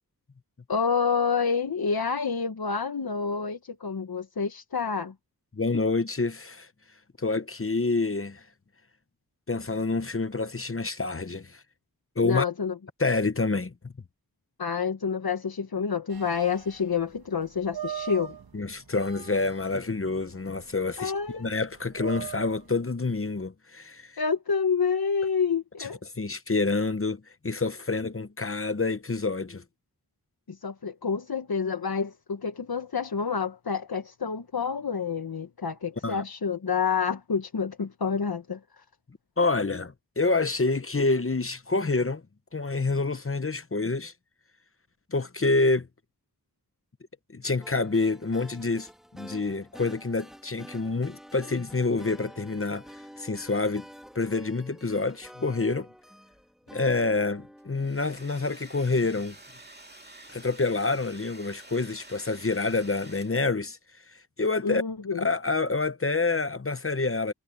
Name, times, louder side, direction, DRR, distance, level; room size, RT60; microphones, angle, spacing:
voice 1, 0.7-5.1 12.2-12.8 14.6-18.3 21.0-21.5 24.2-26.0 30.5-38.8 64.6-65.3, left 6 dB, 75° left, 1.2 m, -28 dB
voice 2, 5.5-6.7 7.2-8.5 9.5-11.6 12.2-12.4 13.0-13.9 18.5-24.2 26.2-29.6 36.0-36.2 39.4-42.2 42.5-44.1 45.1-45.9 47.3-53.9 54.1-55.9 56.7-59.3 60.3-63.8 64.1-64.8 65.2-67.3, left 3 dB, 35° left, 0.9 m, -27 dB
sound 1, 16.1-22.8, right 9 dB, 75° right, 1.4 m, -42 dB
sound 2, 47.6-58.7, equal, ahead, 1.4 m, -49 dB
Domestic sounds home sounds, 57.6-63.6, right 2 dB, 25° right, 2.2 m, -49 dB
wide cardioid pair, 70°, 37 cm